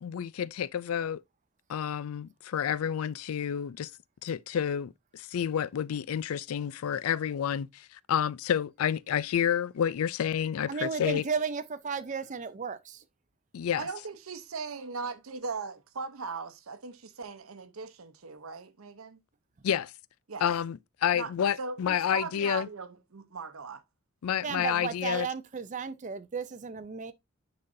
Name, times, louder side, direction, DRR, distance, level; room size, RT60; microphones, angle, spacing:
voice 1, 0.0-1.2 1.7-3.9 4.2-11.2 13.5-13.9 19.6-19.9 20.4-22.7 24.2-25.3, left 9 dB, 85° left, 0.4 m, -29 dB
voice 2, 10.7-13.0 24.4-27.1, right 5 dB, 35° right, 0.5 m, -34 dB
voice 3, 13.8-19.2 20.3-20.4 21.1-21.3 21.6-23.8, right 4 dB, 75° right, 0.8 m, -39 dB
9.6 x 4.1 x 2.6 m
head